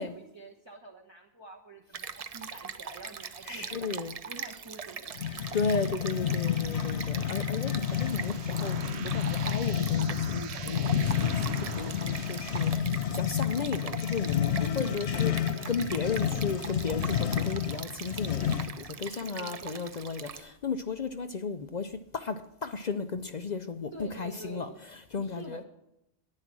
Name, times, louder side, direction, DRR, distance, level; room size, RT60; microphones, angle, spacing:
voice 1, 0.0-3.9 4.3-5.6 14.6-15.7 19.0-19.8 23.9-24.8 25.2-25.6, right 2 dB, 25° right, 1.2 m, -47 dB
Stream, 1.9-20.4, right 6 dB, 45° right, 0.5 m, -41 dB
voice 2, 3.5-4.1 5.5-15.3 15.7-25.6, left 5 dB, 50° left, 0.7 m, -34 dB
sound 1, 5.2-18.9, left 9 dB, 90° left, 0.9 m, -30 dB
sound 2, 7.8-12.8, right 8 dB, 85° right, 1.0 m, -42 dB
10.5 x 10.0 x 6.1 m
omnidirectional pair, 1.1 m